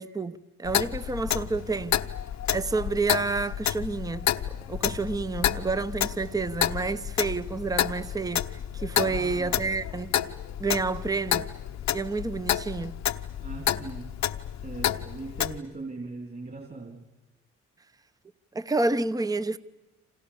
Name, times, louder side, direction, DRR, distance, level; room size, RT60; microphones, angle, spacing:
voice 1, 0.0-2.0 2.5-4.3 4.7-10.2 10.6-11.5 11.9-13.0 18.5-19.6, right 3 dB, 10° right, 0.9 m, -29 dB
Clock, 0.6-15.6, left 11 dB, 65° left, 1.0 m, -30 dB
voice 2, 9.0-9.6 13.4-14.2 14.6-17.1, right 3 dB, 30° right, 3.4 m, -40 dB
29.0 x 26.5 x 7.1 m
cardioid pair, 90°, 30 cm